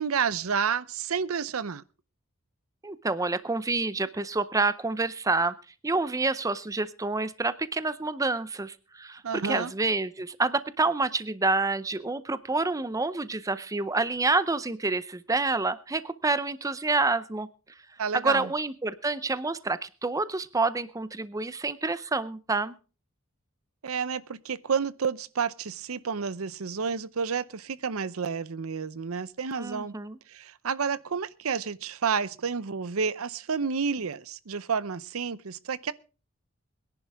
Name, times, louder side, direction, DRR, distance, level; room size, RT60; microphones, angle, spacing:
voice 1, 0.0-1.8 9.2-9.7 18.0-18.5 23.8-29.9 30.3-35.9, right 6 dB, 90° right, 0.7 m, -30 dB
voice 2, 2.8-5.5 5.8-17.5 18.1-22.7 29.6-30.2, right 3 dB, 15° right, 0.6 m, -28 dB
22.0 x 11.0 x 3.5 m
head